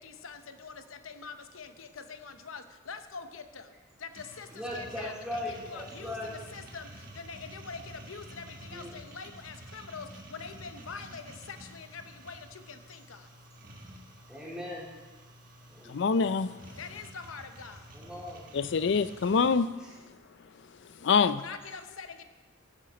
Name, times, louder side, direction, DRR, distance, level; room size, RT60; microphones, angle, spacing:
voice 1, 0.0-3.7 4.0-13.3 16.8-18.0 21.3-22.2, left 5 dB, 90° left, 9 dB, 0.9 m, -44 dB
sound 1, 4.1-19.6, right 1 dB, 45° right, 1.7 m, -50 dB
voice 2, 4.5-6.3 8.7-9.0 14.3-14.9 15.6-16.3 17.9-18.5 19.8-19.9, left 1 dB, 5° right, -7 dB, 3.6 m, -39 dB
voice 3, 15.9-16.5 18.5-19.7 21.0-21.4, left 5 dB, 60° left, 14 dB, 0.4 m, -25 dB
15.5 x 10.0 x 4.1 m, 1.3 s
head